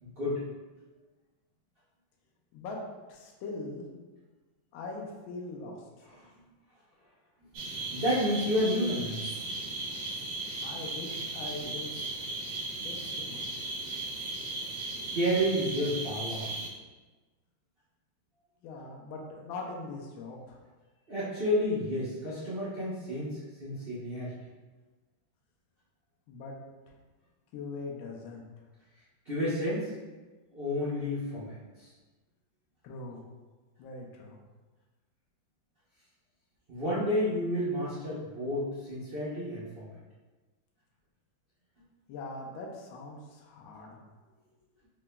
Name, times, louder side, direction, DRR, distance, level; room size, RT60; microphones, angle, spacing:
voice 1, 0.0-0.4 6.0-6.3 7.5-9.2 15.1-16.5 21.1-24.3 29.2-29.9 30.5-31.9 36.7-40.0, equal, 90° right, -9 dB, 0.5 m, -31 dB
voice 2, 3.1-3.8 4.7-5.8 10.6-11.9 12.8-13.5 18.6-20.6 26.3-26.6 27.5-28.5 32.8-33.2 33.8-34.4 42.1-44.0, left 3 dB, 80° left, -1 dB, 1.4 m, -41 dB
sound 1, 7.5-16.7, right 2 dB, 70° right, 0.8 m, -37 dB
4.6 x 2.9 x 2.2 m, 1.2 s
omnidirectional pair, 2.2 m